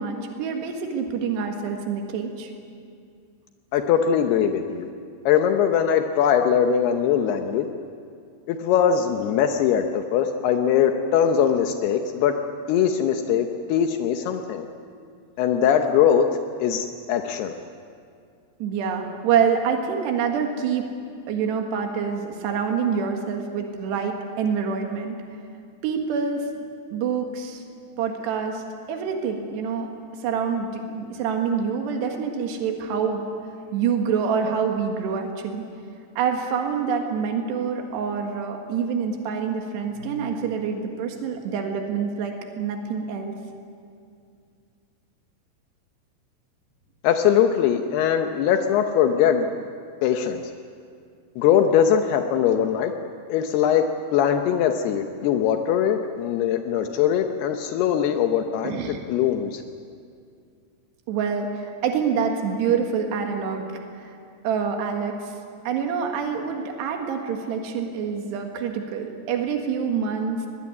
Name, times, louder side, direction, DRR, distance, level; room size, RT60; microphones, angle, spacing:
voice 1, 0.0-2.5 18.6-20.9 21.3-25.2 25.8-26.5 26.9-27.6 28.0-28.6 28.9-29.9 30.2-33.2 33.7-35.7 36.2-43.4 58.6-59.0 61.1-63.6 63.9-64.2 64.4-65.3 65.7-70.4, right 6 dB, 85° right, 3 dB, 3.9 m, -26 dB
voice 2, 3.7-4.9 5.3-7.7 8.5-12.4 12.7-14.7 15.4-16.3 16.6-17.5 47.0-49.5 50.0-50.5 51.4-52.9 53.3-53.8 54.1-58.8 59.1-59.6, left 8 dB, 80° left, 5 dB, 2.9 m, -21 dB
22.5 x 21.5 x 9.6 m, 2.3 s
omnidirectional pair, 4.7 m